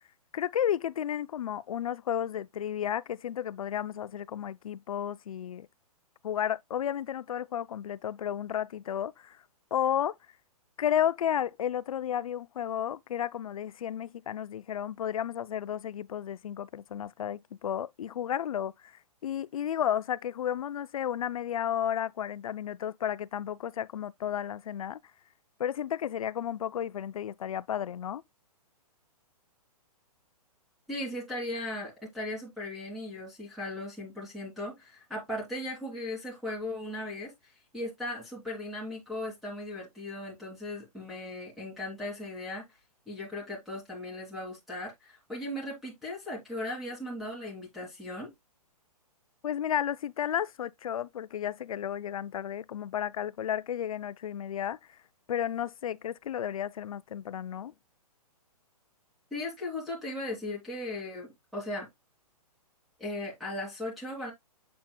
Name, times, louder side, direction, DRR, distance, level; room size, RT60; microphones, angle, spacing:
voice 1, 0.3-5.7 6.2-9.4 9.7-10.2 10.8-18.9 19.2-25.0 25.6-28.2 49.4-54.8 55.3-57.7, left 10 dB, 65° left, 0.5 m, -32 dB
voice 2, 30.9-42.6 43.1-48.3 59.3-61.9 63.0-64.3, left 1 dB, ahead, 2.6 m, -37 dB
7.4 x 7.0 x 2.2 m
hypercardioid pair, 165°, 20 cm